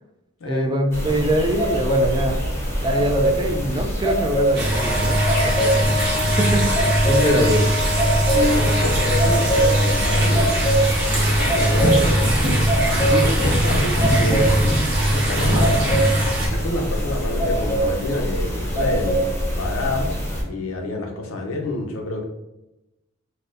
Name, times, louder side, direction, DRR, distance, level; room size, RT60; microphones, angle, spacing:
voice 1, 0.5-2.4 2.8-7.7, right 1 dB, 20° right, 4 dB, 0.3 m, -24 dB
sound 1, 0.9-20.4, right 1 dB, 15° left, 0.7 m, -23 dB
sound 2, 4.5-16.5, right 1 dB, 55° right, 1.0 m, -21 dB
Wind instrument woodwind instrument, 4.7-10.5, left 1 dB, 85° right, 1.2 m, -29 dB
voice 2, 7.1-7.5 8.3-10.8 11.1-12.6 12.9-16.0 16.5-20.1 20.5-22.2, left 2 dB, 80° left, 3 dB, 0.6 m, -27 dB
4.0 x 2.2 x 2.5 m, 0.95 s
head